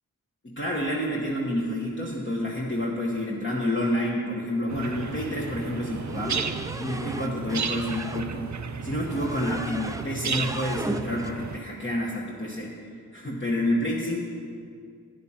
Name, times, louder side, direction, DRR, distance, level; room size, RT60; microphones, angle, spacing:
voice 1, 0.4-6.5 6.8-14.2, left 1 dB, 35° left, -4 dB, 1.2 m, -29 dB
sound 1, 4.7-11.6, right 5 dB, 55° right, 0.6 m, -34 dB
sound 2, 6.1-8.3 9.1-10.1 10.3-11.3, right 2 dB, 10° right, 0.4 m, -36 dB
12.0 x 9.9 x 4.3 m, 2.2 s
wide cardioid pair, 85°, 33 cm